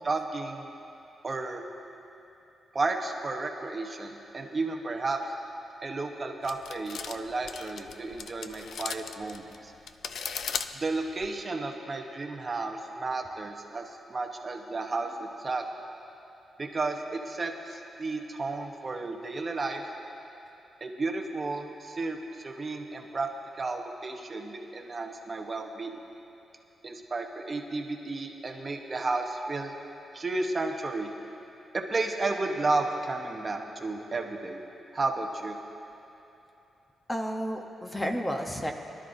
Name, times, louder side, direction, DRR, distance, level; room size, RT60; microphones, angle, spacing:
voice 1, 0.0-0.7 1.2-1.6 2.7-5.2 5.8-9.7 10.8-15.7 16.6-19.8 20.8-23.3 23.6-26.0 26.8-29.7 30.1-31.1 31.7-34.6 34.9-35.6, right 3 dB, 25° right, 2 dB, 0.9 m, -32 dB
sound 1, 6.4-11.4, left 6 dB, 65° left, 0.4 m, -37 dB
voice 2, 37.1-38.7, equal, 10° left, 4 dB, 0.8 m, -31 dB
24.0 x 12.0 x 2.6 m, 2.9 s
wide cardioid pair, 175°, 0 cm